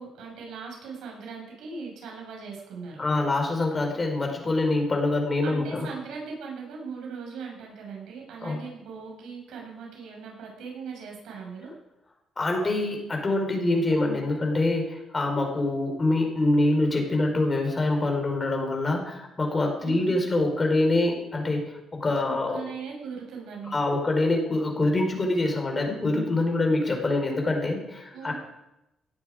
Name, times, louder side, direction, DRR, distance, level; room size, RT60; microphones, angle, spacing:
voice 1, 0.0-3.0 5.4-11.7 19.8-20.2 22.3-24.0 28.1-28.3, right 5 dB, 85° right, 0 dB, 6.0 m, -39 dB
voice 2, 3.0-5.9 8.4-8.6 12.4-22.6 23.7-28.3, left 2 dB, 30° left, 2 dB, 4.8 m, -25 dB
18.0 x 12.0 x 5.0 m, 0.89 s
cardioid pair, 90°, 0 cm